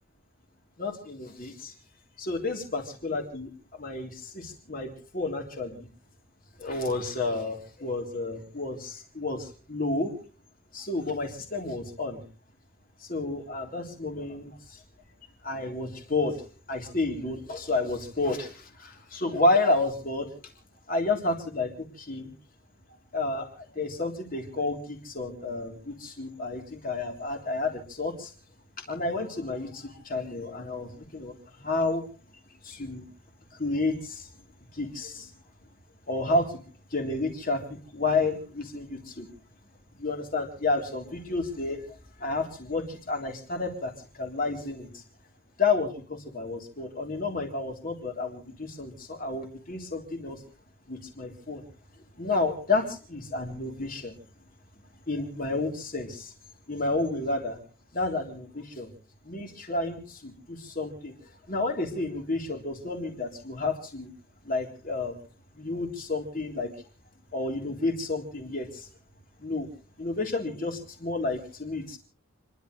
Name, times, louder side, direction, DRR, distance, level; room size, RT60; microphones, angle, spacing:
voice 1, 0.8-1.7 2.2-5.9 6.6-10.1 10.7-12.2 13.0-14.8 15.4-16.4 16.7-20.3 20.9-22.3 23.1-28.3 28.9-32.0 32.6-33.1 33.5-34.3 34.7-35.3 36.1-36.6 36.9-39.3 39.9-45.0 45.6-50.4 50.9-51.6 52.2-54.1 55.1-56.3 56.7-57.6 57.9-58.9 59.2-61.1 61.5-64.1 64.4-65.2 65.5-66.7 67.3-68.9 69.4-69.7 70.0-72.0, left 3 dB, 40° left, 2 dB, 3.5 m, -31 dB
30.0 x 11.5 x 3.2 m, 0.41 s
head